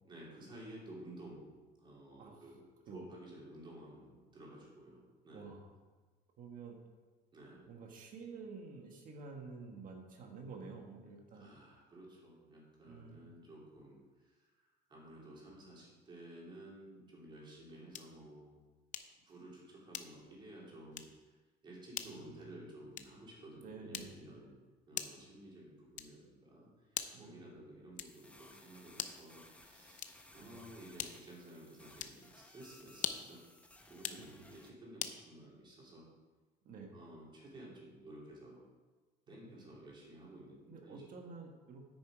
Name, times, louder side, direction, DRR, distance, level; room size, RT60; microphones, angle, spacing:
voice 1, 0.0-1.5 1.8-5.5 7.3-7.7 11.3-18.6 19.2-21.3 21.6-24.6 24.9-33.4 33.9-36.1 36.9-38.6 39.3-41.0, right 1 dB, 25° right, -4 dB, 3.1 m, -53 dB
voice 2, 5.3-5.7 6.4-6.8 7.7-11.5 12.8-13.4 22.0-22.7 23.6-24.3 27.1-27.5 30.4-30.6 34.2-34.5 36.6-36.9 39.3-39.4 40.7-41.9, right 4 dB, 45° right, 2 dB, 1.5 m, -50 dB
sound 1, 17.9-18.2 18.9-19.2 19.9-20.4 20.9-21.2 21.9-22.2 22.9-23.3 23.9-24.3 24.9-25.3 25.9-26.3 26.9-27.3 27.9-28.3 28.9-29.3 29.9-30.3 31.0-31.4 31.9-32.2 32.9-33.4 33.9-34.3 35.0-35.2, left 9 dB, 45° left, 0.6 m, -43 dB
sound 2, 28.0-34.7, left 1 dB, 5° left, 0.8 m, -60 dB
9.6 x 8.9 x 5.0 m, 1.3 s
cardioid pair, 175°, 19 cm